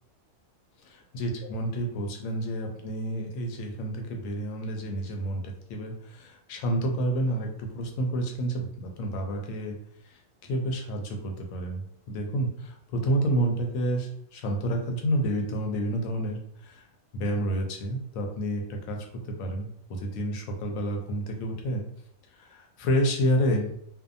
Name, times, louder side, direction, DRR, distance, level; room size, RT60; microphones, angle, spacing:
voice 1, 0.8-9.8 10.0-10.2 10.5-16.8 17.1-19.0 19.2-21.8 22.4-23.7, right 1 dB, 90° left, 2 dB, 1.0 m, -29 dB
2.6 x 2.2 x 2.5 m, 0.70 s
omnidirectional pair, 1.4 m